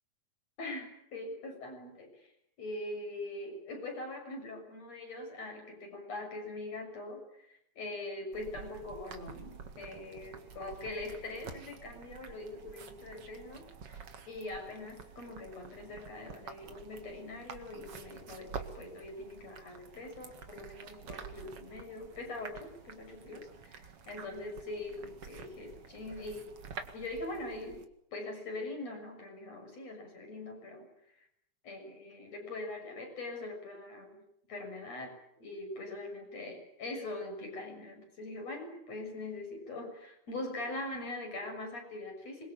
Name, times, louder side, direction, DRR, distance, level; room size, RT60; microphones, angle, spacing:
voice 1, 0.6-2.3 2.6-26.5 26.9-27.8 28.1-30.9 31.1-31.3 31.6-34.2 34.5-42.5, left 2 dB, 55° left, 3 dB, 7.8 m, -42 dB
sound 1, 8.3-27.9, right 6 dB, 50° right, 2.7 m, -49 dB
26.5 x 23.0 x 8.7 m, 0.73 s
omnidirectional pair, 3.6 m